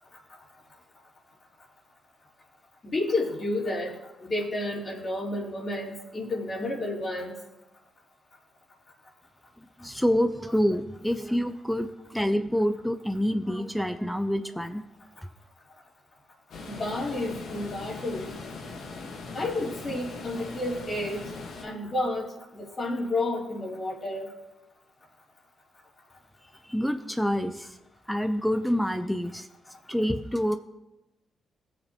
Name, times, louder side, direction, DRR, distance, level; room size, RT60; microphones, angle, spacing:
voice 1, 2.8-7.4 16.6-18.3 19.3-21.2 21.6-22.3 22.5-24.3, left 2 dB, 45° left, -4 dB, 4.0 m, -31 dB
voice 2, 9.6-14.8 26.6-27.7 28.1-29.5 29.9-30.6, equal, 5° left, 8 dB, 0.8 m, -27 dB
sound 1, 16.5-21.6, left 3 dB, 70° left, 1.6 m, -40 dB
18.5 x 6.9 x 3.1 m, 0.98 s
hypercardioid pair, 45°, 0 cm